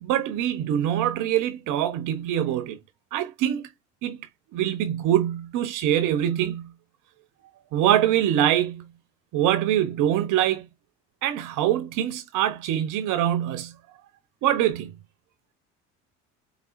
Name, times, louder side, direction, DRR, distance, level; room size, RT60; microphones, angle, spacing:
voice 1, 0.0-2.8 3.1-3.7 4.0-4.2 4.5-6.7 7.7-8.8 9.3-10.7 11.2-13.7 14.4-14.9, right 11 dB, 60° right, 0.7 m, -24 dB
4.8 x 3.4 x 2.4 m
hypercardioid pair, 65°, 35 cm